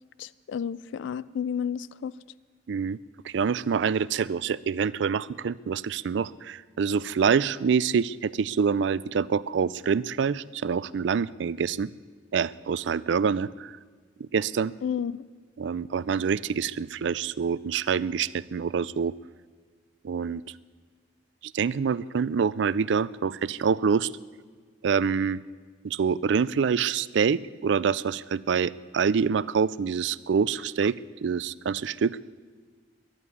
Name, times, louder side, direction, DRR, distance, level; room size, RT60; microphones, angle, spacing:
voice 1, 0.2-2.1 14.8-15.2, left 7 dB, 70° left, 19 dB, 0.3 m, -31 dB
voice 2, 2.7-3.0 3.2-11.9 12.3-13.7 14.2-14.7 15.6-19.1 20.0-20.4 21.4-24.1 24.8-25.4 25.8-32.2, right 6 dB, 65° right, 19 dB, 0.4 m, -26 dB
11.0 x 11.0 x 9.6 m, 1.5 s
head